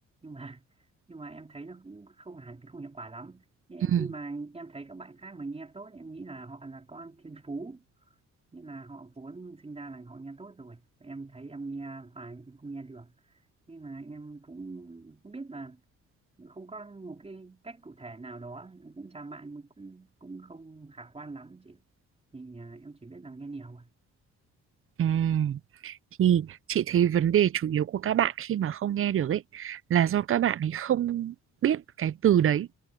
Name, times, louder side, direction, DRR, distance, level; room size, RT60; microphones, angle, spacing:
voice 1, 0.2-0.7 1.1-7.8 8.5-13.1 13.7-15.8 16.4-21.8 22.3-23.9, right 3 dB, 20° right, 3.4 m, -43 dB
voice 2, 25.0-31.3 31.6-32.7, right 10 dB, 45° right, 0.6 m, -25 dB
cardioid pair, 90°, 30 cm